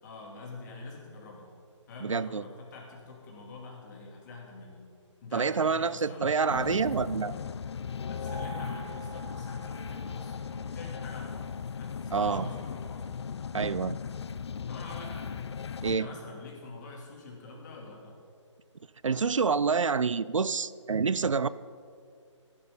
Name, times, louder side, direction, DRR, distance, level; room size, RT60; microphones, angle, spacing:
voice 1, 0.0-1.5 1.9-4.9 5.2-6.4 8.0-13.2 14.7-15.4 15.8-18.1, left 3 dB, 35° left, -2 dB, 3.1 m, -46 dB
voice 2, 2.0-2.4 5.3-7.4 12.1-12.5 13.5-14.0 15.8-16.1 19.0-21.5, right 5 dB, 80° right, 18 dB, 0.5 m, -27 dB
sound 1, 6.5-16.0, left 6 dB, 60° left, 0.4 m, -37 dB
sound 2, 8.3-13.0, right 10 dB, 15° right, 0.8 m, -50 dB
15.5 x 12.0 x 4.0 m, 2.3 s
figure-of-eight pair, 145°, 16 cm